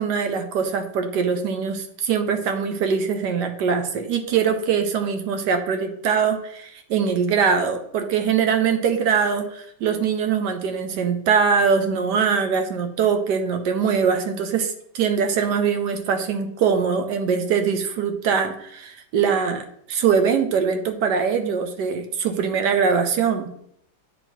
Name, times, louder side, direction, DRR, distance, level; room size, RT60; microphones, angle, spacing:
voice 1, 0.0-23.5, right 6 dB, 70° right, 7 dB, 1.1 m, -22 dB
9.0 x 3.1 x 4.4 m, 0.70 s
omnidirectional pair, 2.2 m